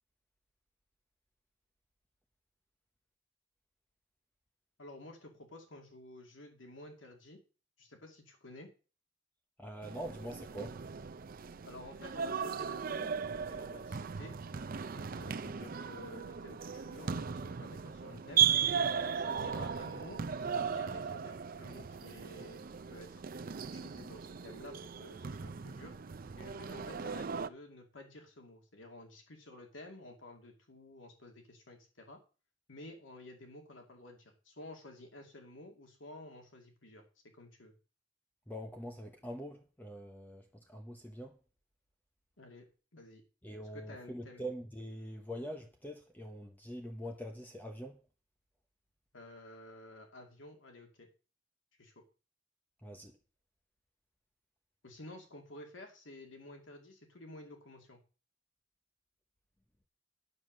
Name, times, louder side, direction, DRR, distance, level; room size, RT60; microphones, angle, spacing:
voice 1, 4.8-7.4 7.8-8.7 11.7-14.3 14.9-18.5 18.9-26.0 26.4-32.2 32.7-37.1 37.3-37.7 42.4-43.2 43.7-44.4 49.1-51.1 51.8-51.9 54.8-58.0, left 1 dB, 85° left, 2.5 m, -52 dB
voice 2, 9.6-10.8 15.6-15.7 38.5-41.4 43.4-48.0 52.8-53.1, equal, 10° left, 0.9 m, -44 dB
sound 1, 9.8-27.5, right 7 dB, 50° right, 0.5 m, -36 dB
9.5 x 7.1 x 6.3 m
head